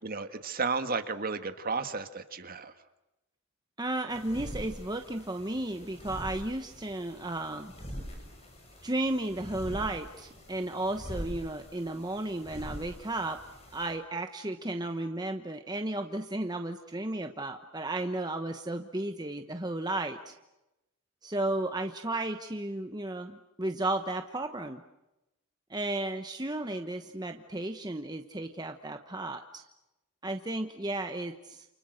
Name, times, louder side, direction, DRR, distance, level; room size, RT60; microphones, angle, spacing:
voice 1, 0.0-2.7, right 4 dB, 40° right, 8 dB, 1.8 m, -33 dB
voice 2, 3.8-7.7 8.8-13.4 13.7-20.4 21.2-24.8 25.7-29.6 30.2-31.7, right 2 dB, 20° right, 6 dB, 1.1 m, -34 dB
sound 1, 4.1-13.9, equal, 30° left, 7.3 m, -44 dB
29.5 x 29.0 x 6.6 m, 0.95 s
head